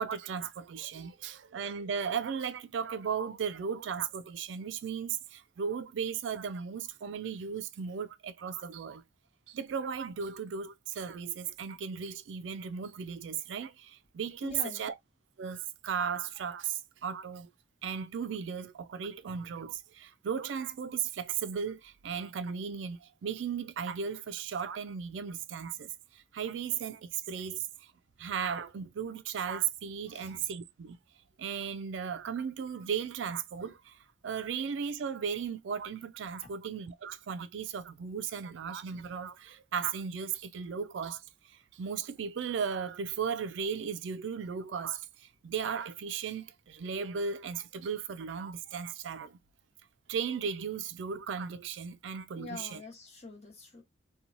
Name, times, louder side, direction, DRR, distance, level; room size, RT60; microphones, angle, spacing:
voice 1, 0.0-9.0 9.5-14.5 14.8-14.9 15.4-17.5 17.8-27.9 28.2-31.0 31.4-34.0 34.2-41.2 41.5-49.4 50.1-52.8, right 6 dB, 75° right, 0.4 m, -36 dB
voice 2, 14.4-14.9 30.1-30.3 36.4-36.5 52.4-53.8, left 2 dB, 35° left, 1.0 m, -44 dB
3.0 x 2.2 x 2.5 m
head